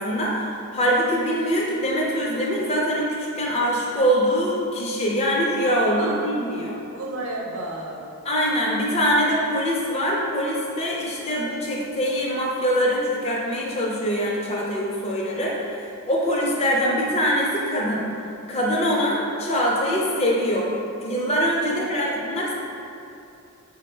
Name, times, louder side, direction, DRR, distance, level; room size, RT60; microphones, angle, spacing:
voice 1, 0.0-6.8 8.2-18.0 18.5-20.7 21.0-22.5, equal, 30° left, -3 dB, 0.4 m, -23 dB
voice 2, 5.9-6.3 6.7-8.1 21.7-22.3, right 2 dB, 65° right, -1 dB, 0.5 m, -33 dB
3.9 x 2.0 x 4.3 m, 2.7 s
head